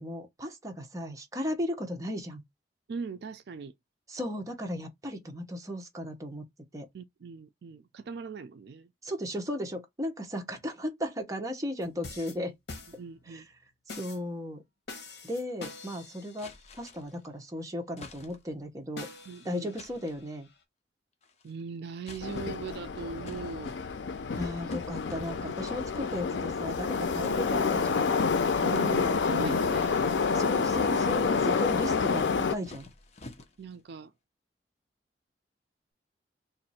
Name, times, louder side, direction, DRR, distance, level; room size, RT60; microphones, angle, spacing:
voice 1, 0.0-2.4 4.1-6.4 6.7-6.9 9.0-12.5 13.3-13.4 13.9-14.6 15.2-19.1 19.4-20.5 24.3-28.1 30.3-32.9, left 1 dB, 20° right, 0.8 m, -36 dB
voice 2, 2.9-3.7 6.9-8.9 13.0-13.5 19.3-19.7 21.4-23.8 28.6-30.1 33.6-34.1, right 5 dB, 65° right, 0.4 m, -39 dB
sound 1, 11.8-13.4 13.9-14.3 14.9-16.7 19.0-20.6, left 3 dB, 65° left, 1.2 m, -46 dB
sound 2, 16.4-17.3 18.0-18.6 19.8-20.3 21.2-21.6 22.0-22.7 23.3-24.2 24.7-25.3 25.7-26.1 27.2-28.1 28.7-29.9 30.4-31.5 32.2-33.8, left 2 dB, 40° left, 0.7 m, -51 dB
Subway metro underground, 22.2-32.6, left 5 dB, 85° left, 0.5 m, -28 dB
3.1 x 2.6 x 4.1 m
head